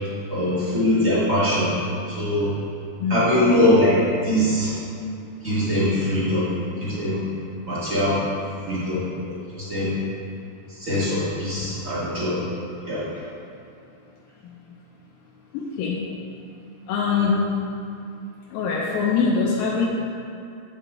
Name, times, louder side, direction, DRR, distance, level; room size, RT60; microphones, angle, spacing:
voice 1, 0.3-1.7 2.2-2.5 3.1-4.0 4.2-4.7 5.4-6.5 6.8-7.2 7.7-8.2 8.7-9.9 10.8-12.4 12.8-13.1, left 1 dB, 50° right, -10 dB, 0.9 m, -22 dB
voice 2, 3.0-3.4 14.4-14.5 15.5-16.0 16.9-17.5 18.5-19.9, left 5 dB, 85° left, -4 dB, 2.4 m, -23 dB
8.4 x 6.8 x 3.6 m, 2.5 s
omnidirectional pair, 4.1 m